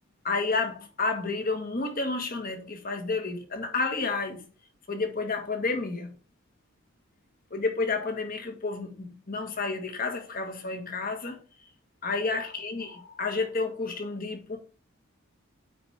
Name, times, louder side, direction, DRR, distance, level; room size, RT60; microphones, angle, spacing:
voice 1, 0.2-4.4 4.9-6.2 7.5-11.4 12.0-14.6, left 3 dB, 45° left, 1.6 m, -30 dB
9.2 x 4.4 x 3.6 m
head